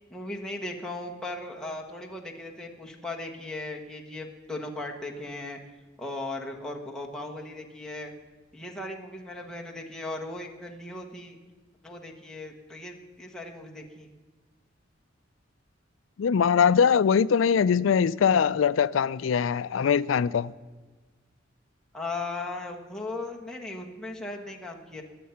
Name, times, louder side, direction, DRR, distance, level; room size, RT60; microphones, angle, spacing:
voice 1, 0.1-5.6 6.0-8.1 8.5-11.4 11.8-14.1 21.9-25.0, left 2 dB, 5° left, 1.4 m, -37 dB
voice 2, 16.2-20.5, left 7 dB, 80° left, 0.4 m, -22 dB
21.5 x 7.5 x 5.8 m
head